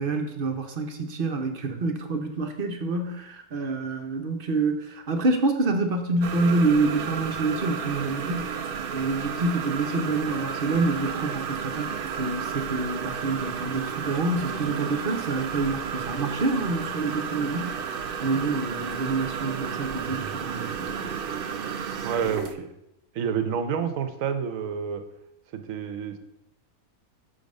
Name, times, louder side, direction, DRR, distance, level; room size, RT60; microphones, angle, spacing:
voice 1, 0.0-8.5 8.9-21.1, right 3 dB, 45° right, 5 dB, 0.8 m, -27 dB
sound 1, 6.2-22.5, right 7 dB, 90° right, 0.4 m, -32 dB
voice 2, 22.0-22.7 23.1-25.0 25.5-26.2, right 7 dB, 60° right, 8 dB, 1.1 m, -28 dB
6.7 x 5.1 x 5.2 m, 0.84 s
omnidirectional pair, 1.7 m